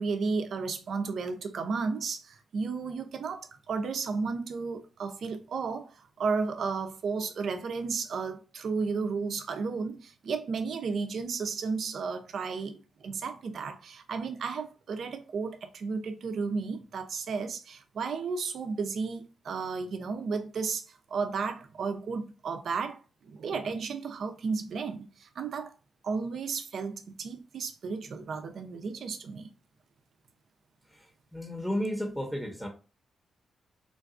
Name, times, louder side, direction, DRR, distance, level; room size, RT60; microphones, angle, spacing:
voice 1, 0.0-23.0 23.2-25.7 26.0-29.5, right 5 dB, 70° right, 0.5 m, -33 dB
voice 2, 31.3-32.7, equal, ahead, 0.8 m, -32 dB
3.8 x 2.4 x 2.4 m
supercardioid pair, 55°, 0 cm